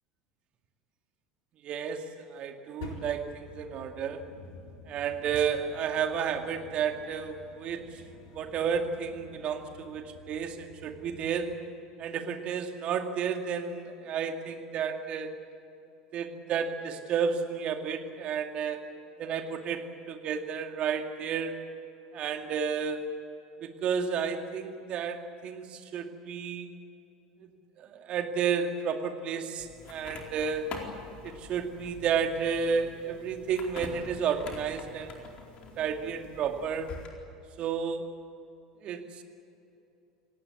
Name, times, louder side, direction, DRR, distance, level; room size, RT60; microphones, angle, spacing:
voice 1, 1.6-4.2 4.9-8.0 8.3-11.6 12.0-15.4 16.1-18.9 19.2-21.6 22.1-23.1 23.6-26.7 27.4-27.5 27.8-30.7 31.2-35.2 35.8-37.0 37.6-38.1 38.8-39.2, right 6 dB, 45° right, 5 dB, 2.3 m, -32 dB
sound 1, 2.8-11.6, left 3 dB, 60° left, 4.0 m, -49 dB
sound 2, 29.6-37.1, left 4 dB, 45° left, 4.3 m, -45 dB
28.0 x 18.0 x 8.6 m, 2.8 s
figure-of-eight pair, 75°, 3 cm